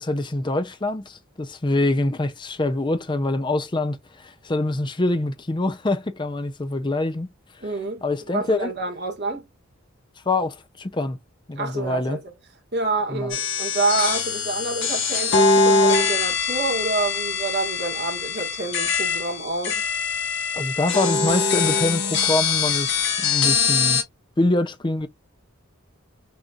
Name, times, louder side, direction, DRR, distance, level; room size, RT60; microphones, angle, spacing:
voice 1, 0.0-7.3 8.0-8.7 10.3-11.2 11.5-12.2 13.1-13.3 20.5-24.0 24.4-25.1, left 2 dB, 20° left, 0.5 m, -25 dB
voice 2, 7.6-8.0 8.3-9.5 11.6-12.2 12.7-19.8, right 3 dB, 50° right, 1.7 m, -27 dB
sound 1, 13.3-24.0, left 4 dB, 55° left, 1.4 m, -23 dB
6.4 x 3.0 x 2.4 m
head